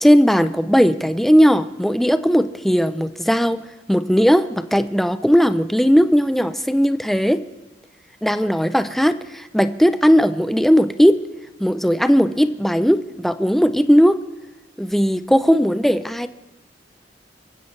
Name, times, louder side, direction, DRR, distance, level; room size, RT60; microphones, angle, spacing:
voice 1, 0.0-3.6 3.9-7.4 8.2-11.2 11.6-14.2 14.8-16.3, equal, ahead, 10 dB, 0.6 m, -17 dB
26.0 x 15.5 x 3.3 m, 1.1 s
head